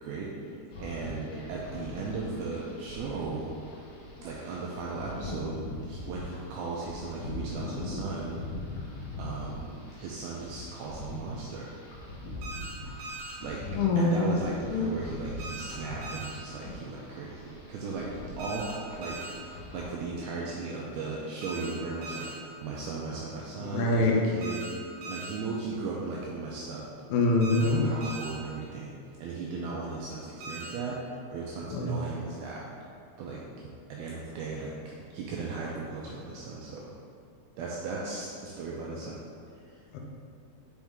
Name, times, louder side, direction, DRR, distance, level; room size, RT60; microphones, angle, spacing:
voice 1, 0.0-3.5 4.2-8.4 9.2-11.8 13.4-13.6 14.0-18.7 19.0-19.5 19.7-24.6 25.1-26.8 27.5-28.9 29.2-31.0 31.3-32.7 33.2-33.4 33.9-34.7 35.1-36.9 37.6-39.2 39.7-39.8, right 4 dB, 90° right, -4 dB, 2.2 m, -37 dB
sound 1, 0.7-19.9, left 2 dB, 65° left, 1.9 m, -41 dB
sound 2, 12.4-12.7 13.0-13.3 15.4-15.7 16.0-16.3 18.4-18.7 19.0-19.3 21.4-21.7 22.0-22.3 24.4-24.7 25.0-25.3 27.4-27.7 28.0-28.3 30.4-30.7, right 2 dB, 60° right, 2.8 m, -40 dB
voice 2, 13.8-14.4 14.7-14.9 23.6-24.1 27.1-27.8 31.7-31.9 39.9-40.0, left 2 dB, 85° left, -1 dB, 2.1 m, -24 dB
5.9 x 5.3 x 3.5 m, 2.4 s
omnidirectional pair, 5.0 m